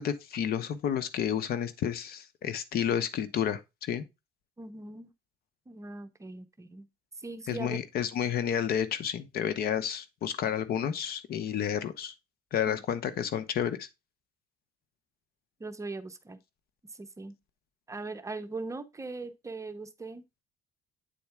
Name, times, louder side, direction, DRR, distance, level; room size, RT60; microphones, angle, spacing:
voice 1, 0.0-4.0 7.5-12.1 12.5-13.9, left 9 dB, 65° left, 1.0 m, -31 dB
voice 2, 4.6-5.1 5.7-6.9 7.2-7.8 12.7-12.8 15.6-16.4 16.9-17.3 17.9-20.2, right 3 dB, 20° right, 0.7 m, -40 dB
8.7 x 4.2 x 3.5 m
cardioid pair, 110°, 17 cm